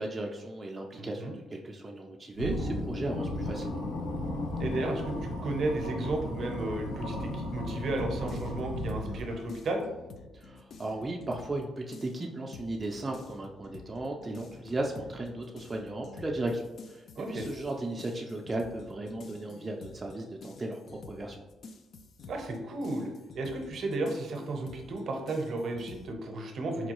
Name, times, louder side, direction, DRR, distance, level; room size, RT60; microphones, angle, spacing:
voice 1, 0.0-3.8 10.3-21.4, right 2 dB, 25° right, 0 dB, 0.4 m, -36 dB
voice 2, 1.0-1.3 4.6-9.8 17.1-17.5 22.3-26.9, right 2 dB, 60° right, 3 dB, 0.6 m, -33 dB
sound 1, 2.3-9.6, left 1 dB, 90° left, 0.7 m, -35 dB
sound 2, 7.7-11.6 11.9-26.1, left 4 dB, 60° left, 0.3 m, -50 dB
4.3 x 2.3 x 2.9 m, 1.1 s
cardioid pair, 90°, 0 cm